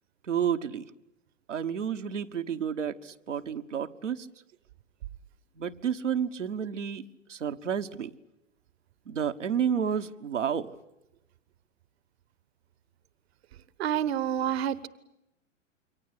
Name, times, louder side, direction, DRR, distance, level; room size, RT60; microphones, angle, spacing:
voice 1, 0.3-0.9 1.5-4.3 5.6-7.0 7.3-8.1 9.1-10.7, right 8 dB, 75° right, 6 dB, 1.3 m, -30 dB
voice 2, 13.8-14.9, right 10 dB, 55° right, 17 dB, 1.3 m, -28 dB
28.0 x 24.0 x 8.4 m, 0.90 s
figure-of-eight pair, 105°, 37 cm